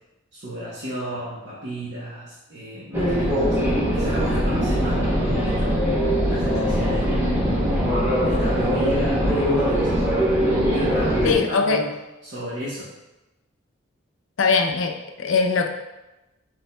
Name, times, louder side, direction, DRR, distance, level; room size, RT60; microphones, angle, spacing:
voice 1, 0.3-3.7 3.9-5.9 6.3-7.4 8.2-10.0 10.7-11.9 12.2-12.9, equal, 55° right, -8 dB, 0.9 m, -33 dB
sound 1, 2.9-11.4, equal, 10° right, 0.7 m, -21 dB
voice 2, 11.2-11.8 14.4-15.7, left 4 dB, 70° left, 4 dB, 0.5 m, -21 dB
6.8 x 3.5 x 2.2 m, 1.0 s
head